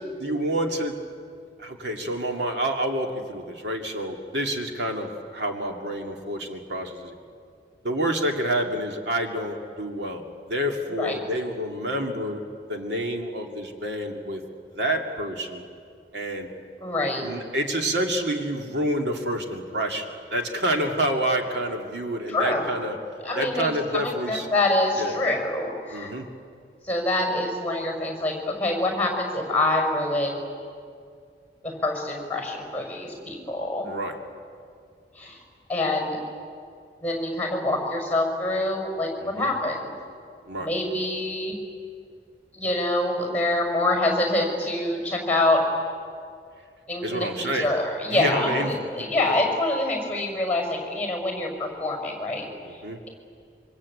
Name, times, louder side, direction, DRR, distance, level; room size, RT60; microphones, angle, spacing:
voice 1, 0.2-1.0 1.6-7.2 7.8-12.4 12.7-14.4 14.7-15.6 16.1-16.5 17.2-20.1 20.3-23.0 23.4-24.5 25.0-25.2 25.9-26.3 33.8-34.1 39.2-39.5 40.5-40.7 47.0-47.7 48.1-48.7 49.3-49.4 52.6-53.0, right 1 dB, 75° right, 2 dB, 2.4 m, -28 dB
voice 2, 16.8-17.2 22.3-22.6 23.2-26.1 26.8-30.5 31.6-33.9 35.2-35.4 35.7-36.2 37.0-39.9 40.6-41.5 42.5-45.6 46.9-52.5, left 2 dB, 5° left, 2 dB, 5.7 m, -26 dB
26.5 x 25.0 x 8.6 m, 2.3 s
head